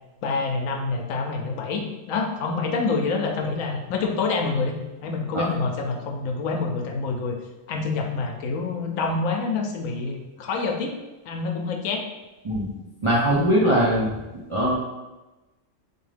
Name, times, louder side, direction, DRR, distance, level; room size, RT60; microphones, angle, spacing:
voice 1, 0.2-4.7 5.0-7.4 7.7-10.9 11.2-12.1, left 4 dB, 85° left, 3 dB, 1.0 m, -27 dB
voice 2, 13.0-14.1 14.5-14.7, equal, 35° right, -6 dB, 0.5 m, -20 dB
3.5 x 2.7 x 3.3 m, 1.1 s
omnidirectional pair, 1.4 m